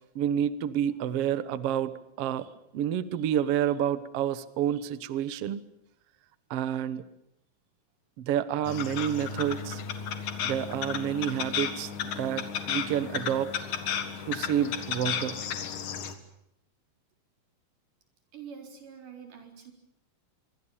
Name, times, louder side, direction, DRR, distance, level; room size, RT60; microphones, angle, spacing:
voice 1, 0.1-2.5 2.7-5.6 6.5-7.0 8.2-9.8 10.4-13.5 14.3-15.4, right 10 dB, 90° right, 15 dB, 1.3 m, -29 dB
sound 1, 8.6-16.1, left 7 dB, 60° left, 2.9 m, -34 dB
voice 2, 18.3-19.7, right 7 dB, 55° right, 4 dB, 5.6 m, -45 dB
26.0 x 24.0 x 7.2 m, 0.78 s
omnidirectional pair, 4.5 m